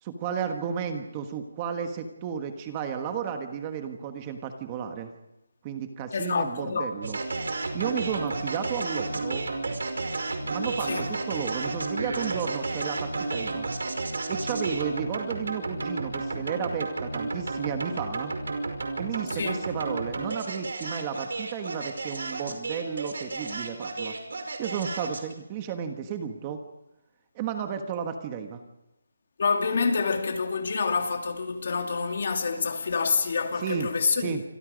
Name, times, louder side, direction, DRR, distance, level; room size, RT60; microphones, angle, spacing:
voice 1, 0.0-5.1 5.6-7.2 7.7-9.5 10.5-13.7 14.3-18.3 19.0-24.1 24.6-26.6 27.3-28.6 33.6-33.9 34.1-34.4, right 7 dB, 15° right, 1.4 m, -33 dB
voice 2, 6.1-6.9 10.8-11.1 19.3-19.6 29.4-34.3, left 5 dB, 45° left, 2.8 m, -27 dB
sound 1, 7.0-25.3, right 3 dB, 70° right, 5.4 m, -32 dB
27.5 x 26.0 x 5.2 m
hypercardioid pair, 175°, 0 cm